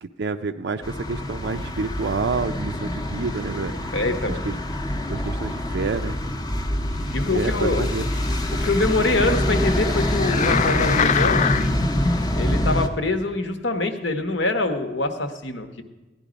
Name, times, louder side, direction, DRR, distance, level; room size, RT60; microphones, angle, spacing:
voice 1, 0.0-3.7 4.5-4.6 5.1-6.2 7.3-8.0, right 4 dB, 65° right, 6 dB, 0.4 m, -28 dB
sound 1, 0.8-12.9, left 1 dB, 20° left, 0.8 m, -25 dB
voice 2, 3.9-4.4 7.1-7.9 8.5-11.4 12.3-15.8, left 2 dB, 70° left, 8 dB, 1.1 m, -24 dB
sound 2, 7.3-11.9 12.5-12.6, left 7 dB, 40° left, 0.3 m, -27 dB
16.0 x 11.0 x 5.1 m, 1.2 s
head